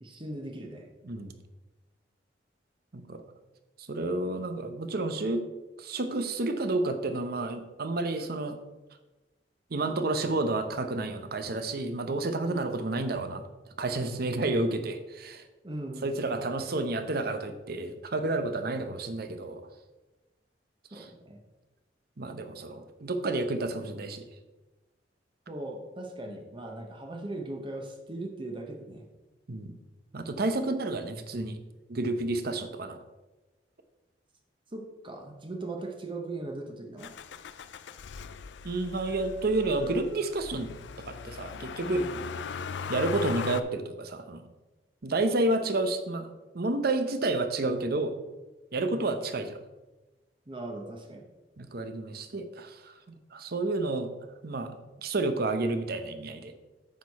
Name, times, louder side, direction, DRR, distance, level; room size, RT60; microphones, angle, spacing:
voice 1, 0.0-0.9 12.4-12.7 15.6-16.4 20.9-21.4 22.5-22.8 25.5-29.0 34.7-37.1 41.8-42.3 48.8-49.2 50.5-51.3, right 2 dB, 30° right, 2 dB, 0.9 m, -39 dB
voice 2, 1.0-1.4 2.9-3.2 3.8-5.4 5.8-8.6 9.7-13.4 13.8-15.4 16.0-19.7 20.9-21.1 22.2-24.3 29.5-29.7 30.1-31.6 31.9-33.0 38.6-40.7 41.1-42.1 42.9-44.5 45.0-48.1 48.7-49.6 51.6-54.1 54.4-54.7 55.0-56.5, right 2 dB, 55° right, 9 dB, 0.8 m, -30 dB
Motor vehicle (road), 37.0-43.6, left 6 dB, 70° left, 0.4 m, -39 dB
9.4 x 6.4 x 4.1 m, 1.1 s
head